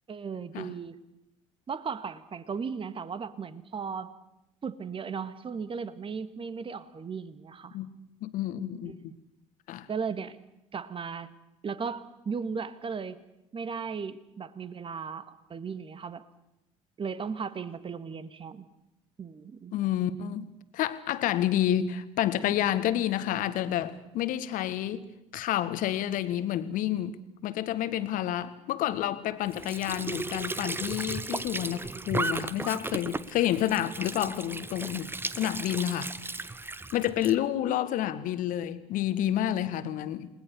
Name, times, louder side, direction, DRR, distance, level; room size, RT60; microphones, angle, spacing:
voice 1, 0.1-1.0 1.7-4.1 4.6-7.8 8.9-9.0 9.9-10.4 10.7-11.3 11.6-13.2 13.5-16.3 17.0-18.7 19.2-19.7, right 5 dB, 35° right, 1.8 m, -36 dB
voice 2, 8.2-9.0 9.7-9.9 19.7-20.5 20.7-25.1 25.3-27.2 27.4-35.1 35.4-36.1 36.9-40.3, left 12 dB, 60° left, 1.7 m, -29 dB
Squeak / Sink (filling or washing) / Trickle dribble, 29.5-37.4, right 2 dB, 15° right, 1.1 m, -35 dB
29.5 x 20.0 x 7.0 m
figure-of-eight pair, 55°, 16 cm